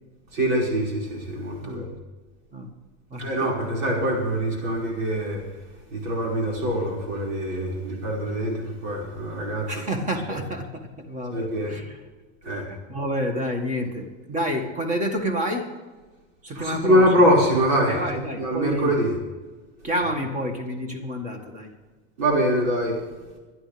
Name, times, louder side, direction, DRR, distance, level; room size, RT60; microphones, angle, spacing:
voice 1, 0.3-1.9 3.2-5.4 5.9-9.7 11.3-11.7 12.4-12.6 16.5-18.0 18.4-19.2 22.2-23.0, equal, 90° right, -3 dB, 5.7 m, -23 dB
voice 2, 3.1-3.7 9.7-12.0 12.4-15.7 16.4-17.1 17.9-18.9 19.8-21.7, equal, 20° right, 4 dB, 2.0 m, -29 dB
23.5 x 11.0 x 3.5 m, 1.3 s
supercardioid pair, 155°, 38 cm